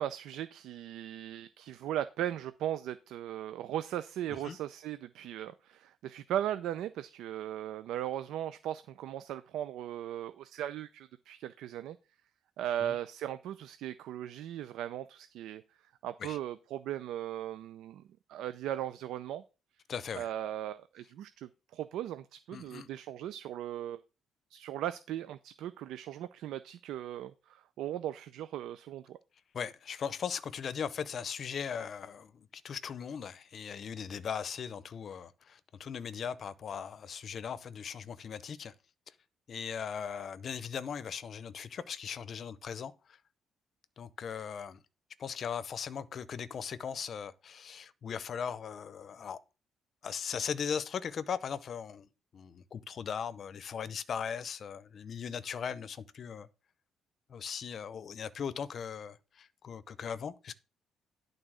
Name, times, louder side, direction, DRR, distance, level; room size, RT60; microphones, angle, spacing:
voice 1, 0.0-12.0 12.6-15.6 16.0-18.0 18.3-19.4 20.2-24.0 24.5-29.2, right 11 dB, 85° right, 0.5 m, -38 dB
voice 2, 19.9-20.3 22.5-22.9 29.5-38.7 39.5-42.9 44.0-44.8 45.2-49.4 50.0-52.1 52.3-56.5 57.3-60.5, left 7 dB, 45° left, 0.6 m, -38 dB
11.0 x 4.0 x 6.2 m
cardioid pair, 150°, 0 cm